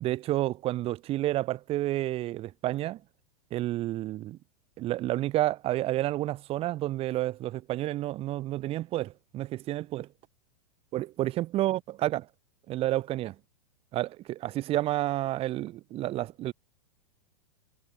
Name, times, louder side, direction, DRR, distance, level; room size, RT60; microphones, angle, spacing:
voice 1, 0.0-3.0 3.5-4.4 4.8-10.1 10.9-12.3 12.7-13.4 13.9-16.5, right 15 dB, 30° right, 2.1 m, -30 dB
figure-of-eight pair, 100°, 19 cm